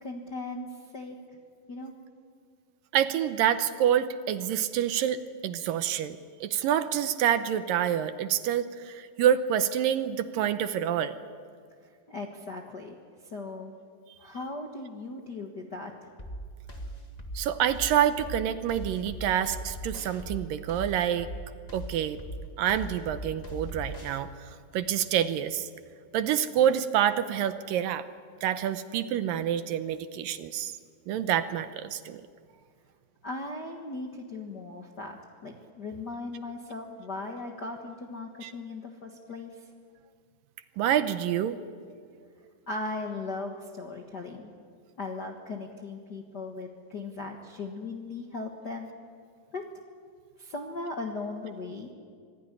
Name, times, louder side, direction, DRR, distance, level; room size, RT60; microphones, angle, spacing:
voice 1, 0.0-1.2 1.7-1.9 12.1-12.9 13.3-13.7 14.2-16.1 33.2-39.6 42.7-44.5 45.0-48.9 49.5-49.6 50.4-51.9, left 3 dB, 55° left, 2 dB, 1.1 m, -38 dB
voice 2, 2.9-11.2 17.3-21.3 21.7-22.2 22.6-25.7 26.1-28.1 28.4-30.7 31.1-32.2 38.4-38.5 40.8-41.6, right 10 dB, 75° right, 11 dB, 2.4 m, -27 dB
sound 1, 16.2-24.2, equal, 80° left, 0.3 m, -39 dB
26.0 x 17.0 x 9.9 m, 2.1 s
omnidirectional pair, 4.3 m